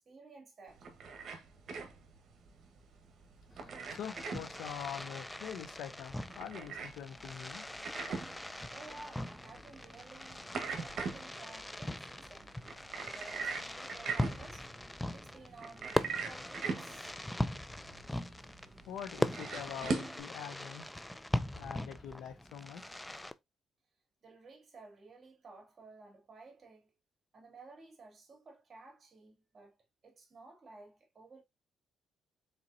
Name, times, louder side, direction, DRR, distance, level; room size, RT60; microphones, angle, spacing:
voice 1, 0.1-0.9 8.7-12.6 12.9-14.7 15.1-17.1 24.2-26.9 27.3-29.8 30.0-31.4, right 3 dB, 40° right, 2.4 m, -54 dB
sound 1, 0.7-20.2, right 5 dB, 60° right, 1.3 m, -42 dB
Fireworks, 3.5-23.3, left 1 dB, 10° left, 0.4 m, -40 dB
voice 2, 3.9-7.7 18.9-21.0 21.5-22.8, left 8 dB, 80° left, 0.8 m, -44 dB
4.5 x 4.1 x 2.6 m
cardioid pair, 90°, 0 cm